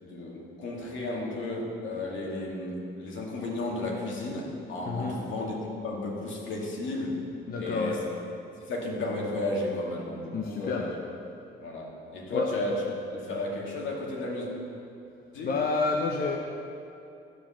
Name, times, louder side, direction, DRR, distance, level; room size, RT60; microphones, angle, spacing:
voice 1, 0.0-5.6 5.8-7.2 7.6-8.0 8.6-10.9 11.6-14.5 15.3-15.5, left 2 dB, 70° left, -2 dB, 2.3 m, -33 dB
voice 2, 4.9-5.2 7.5-8.0 10.3-10.8 12.3-12.5 15.4-16.4, left 4 dB, 45° left, 0 dB, 0.8 m, -29 dB
13.0 x 5.1 x 7.4 m, 2.7 s
cardioid pair, 125°, 21 cm